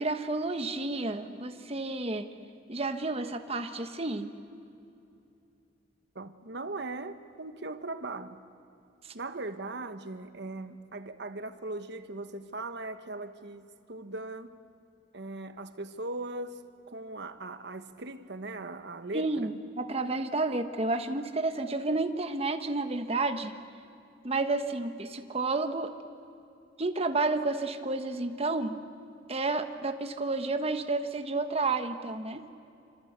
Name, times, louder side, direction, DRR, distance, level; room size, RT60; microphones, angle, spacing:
voice 1, 0.0-2.3 2.7-4.3 9.0-9.1 19.1-23.5 24.2-25.9 26.8-28.8 29.3-32.4, right 3 dB, 30° right, 1.2 m, -31 dB
voice 2, 6.1-8.4 9.1-14.6 15.1-19.5, right 2 dB, 60° right, 1.3 m, -39 dB
26.0 x 26.0 x 8.1 m
head